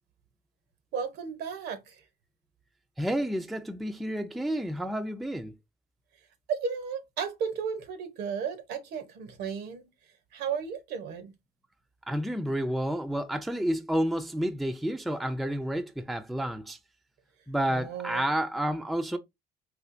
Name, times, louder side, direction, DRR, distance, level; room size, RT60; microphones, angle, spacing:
voice 1, 0.9-2.0 6.5-9.8 10.3-11.3 17.7-18.3, right 6 dB, 75° right, 0.8 m, -34 dB
voice 2, 3.0-5.5 12.1-16.8 17.5-19.2, right 1 dB, ahead, 0.3 m, -30 dB
4.2 x 2.3 x 2.5 m
cardioid pair, 110°, 17 cm